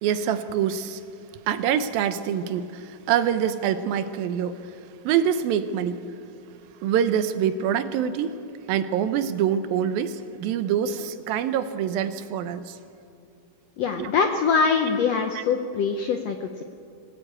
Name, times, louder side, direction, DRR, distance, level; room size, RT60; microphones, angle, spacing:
voice 1, 0.0-1.0 1.5-4.8 5.0-6.0 6.8-8.4 8.7-12.8 14.0-14.1 15.3-15.4, right 9 dB, 85° right, 11 dB, 2.7 m, -25 dB
voice 2, 13.8-16.5, left 5 dB, 75° left, 5 dB, 1.5 m, -23 dB
24.0 x 17.5 x 8.8 m, 2.6 s
omnidirectional pair, 4.1 m